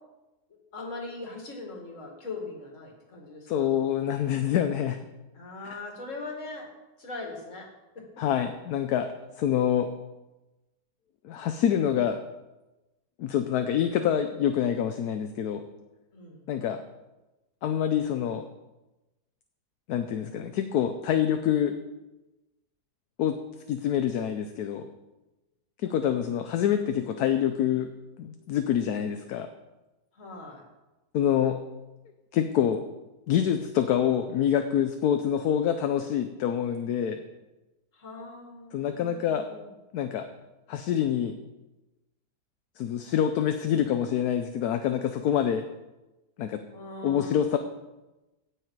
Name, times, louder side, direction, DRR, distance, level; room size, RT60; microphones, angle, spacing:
voice 1, 0.7-3.7 5.3-6.7 7.0-7.7 7.9-8.4 16.1-16.5 25.8-26.5 30.1-30.6 37.9-39.7 46.7-47.6, left 3 dB, 50° left, 1 dB, 2.4 m, -41 dB
voice 2, 3.5-5.0 8.2-9.1 9.4-9.9 11.2-12.2 13.2-15.6 16.5-16.8 17.6-18.4 19.9-21.8 23.2-23.4 23.7-24.9 25.8-27.9 28.2-29.5 31.1-31.6 32.3-32.9 33.3-37.2 38.7-39.5 39.9-40.3 40.7-41.4 42.8-45.7 46.4-46.6 47.0-47.6, left 9 dB, 75° left, 7 dB, 1.2 m, -26 dB
16.5 x 6.6 x 4.6 m, 1.0 s
omnidirectional pair, 1.7 m